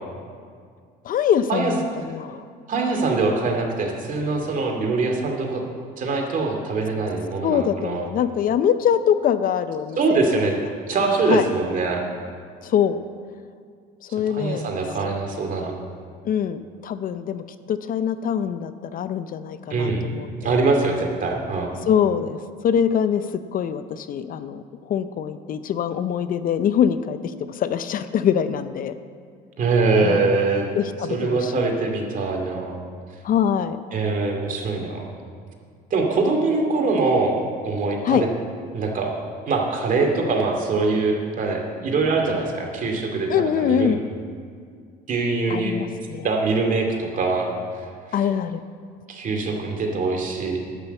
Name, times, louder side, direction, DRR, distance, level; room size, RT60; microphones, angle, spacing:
voice 1, 1.0-2.4 7.4-10.0 11.3-11.5 12.6-13.0 14.0-14.7 16.2-20.6 21.8-23.3 23.5-28.9 30.0-30.2 30.8-31.6 33.2-33.8 38.0-38.2 43.3-44.0 45.5-46.3 48.1-48.6, left 8 dB, 50° left, 12 dB, 0.6 m, -23 dB
voice 2, 2.7-5.7 6.0-8.1 10.0-10.5 10.9-12.0 14.3-15.7 19.7-20.0 20.4-21.7 29.6-30.7 31.1-32.8 33.9-35.0 35.9-37.4 37.6-38.3 38.7-39.1 39.5-44.0 45.1-45.8 46.2-47.5 49.1-50.6, right 3 dB, 45° right, 2 dB, 2.3 m, -23 dB
11.0 x 6.2 x 8.0 m, 2.1 s
supercardioid pair, 90°, 19 cm